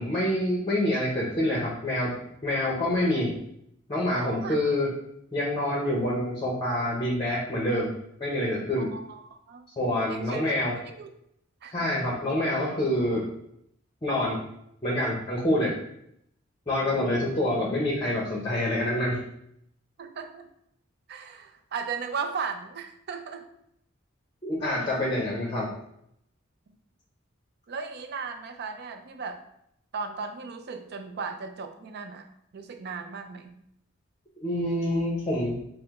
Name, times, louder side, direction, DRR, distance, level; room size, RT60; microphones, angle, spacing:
voice 1, 0.0-2.2 2.4-3.4 3.9-4.9 5.3-7.9 8.2-8.9 9.8-10.7 11.7-13.3 14.0-14.4 14.8-15.7 16.7-19.2 24.4-25.7 34.4-35.6, left 1 dB, 25° left, -3 dB, 0.7 m, -26 dB
voice 2, 4.1-4.6 8.7-9.7 10.1-10.4 10.7-11.1 11.6-11.9 16.8-17.3 20.0-20.5 21.1-23.4 27.7-29.4 29.9-32.3 32.5-33.6, right 5 dB, 55° right, 6 dB, 0.4 m, -36 dB
4.8 x 2.1 x 3.5 m, 0.75 s
head